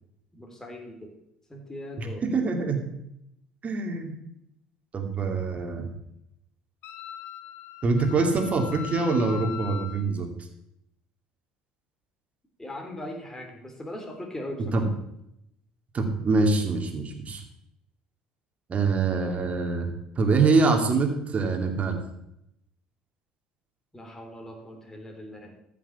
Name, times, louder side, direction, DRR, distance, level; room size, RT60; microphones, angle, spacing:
voice 1, 0.3-1.1 1.5-2.2 12.6-14.8 23.9-25.5, left 1 dB, 10° left, 1 dB, 3.4 m, -39 dB
voice 2, 2.3-2.8 3.6-4.1 4.9-5.9 7.8-10.3 14.7-14.9 15.9-17.4 18.7-22.0, right 4 dB, 35° right, 4 dB, 2.6 m, -24 dB
Wind instrument woodwind instrument, 6.8-10.1, left 10 dB, 55° left, 1.2 m, -40 dB
14.0 x 6.3 x 7.2 m, 0.81 s
figure-of-eight pair, 60°, 4 cm